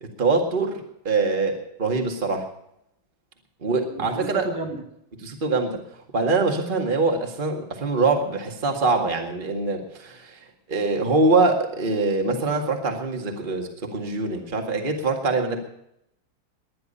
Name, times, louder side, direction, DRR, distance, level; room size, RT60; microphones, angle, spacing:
voice 1, 0.0-2.5 3.6-4.5 5.2-5.8 6.1-10.4 10.7-15.6, right 3 dB, 25° right, 3 dB, 2.0 m, -24 dB
voice 2, 3.9-4.8, right 3 dB, 60° right, 5 dB, 2.5 m, -32 dB
20.5 x 10.5 x 5.5 m, 0.78 s
omnidirectional pair, 2.2 m